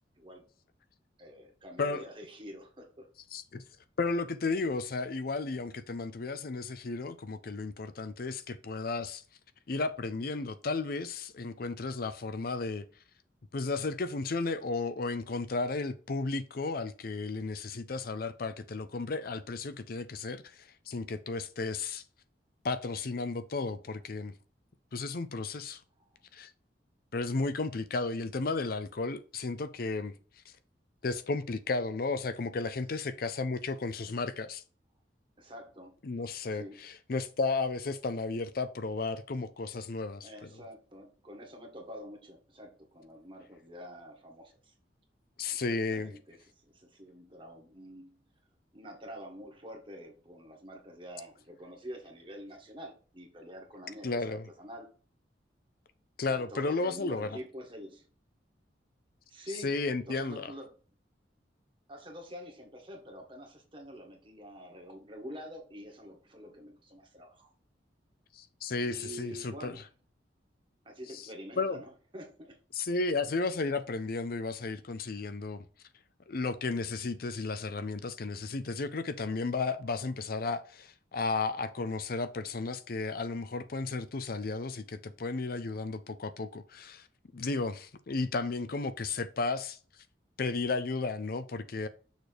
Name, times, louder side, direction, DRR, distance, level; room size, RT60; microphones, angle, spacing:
voice 1, 1.2-3.1 35.4-35.9 36.5-36.8 40.2-44.7 45.5-48.2 48.7-54.9 56.3-58.1 59.3-59.7 60.0-60.7 61.9-67.5 68.9-69.9 70.8-72.6, equal, 30° right, 1.7 m, -47 dB
voice 2, 3.3-3.6 4.0-9.2 9.7-12.8 13.5-22.0 22.6-24.3 24.9-25.8 26.3-26.5 27.1-30.1 31.0-34.6 36.0-40.5 45.4-46.1 54.0-54.5 56.2-57.4 59.6-60.5 68.3-69.7 71.1-71.3 71.6-71.8 72.7-75.6 76.3-87.1 87.3-89.8 90.4-91.9, left 3 dB, 55° left, 0.5 m, -33 dB
6.5 x 3.3 x 4.7 m
head